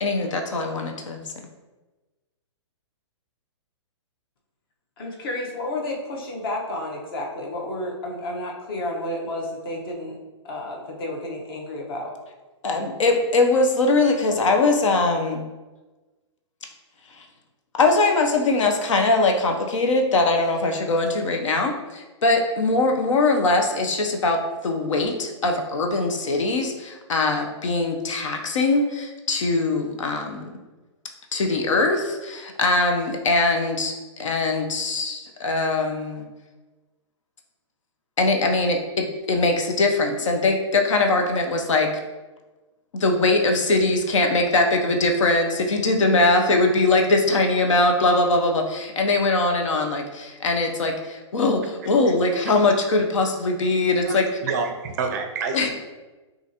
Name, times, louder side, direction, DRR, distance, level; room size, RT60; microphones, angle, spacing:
voice 1, 0.0-1.2 12.6-15.4 17.2-17.3 17.7-30.5 31.3-36.3 38.2-41.9 42.9-54.3 55.5-55.8, left 2 dB, 80° left, 4 dB, 0.7 m, -21 dB
voice 2, 5.0-10.2 10.4-12.1, left 1 dB, 45° left, 0 dB, 1.1 m, -31 dB
voice 3, 54.1-55.8, right 5 dB, 35° right, 5 dB, 0.4 m, -28 dB
6.0 x 2.5 x 2.8 m, 1.2 s
hypercardioid pair, 160°, 16 cm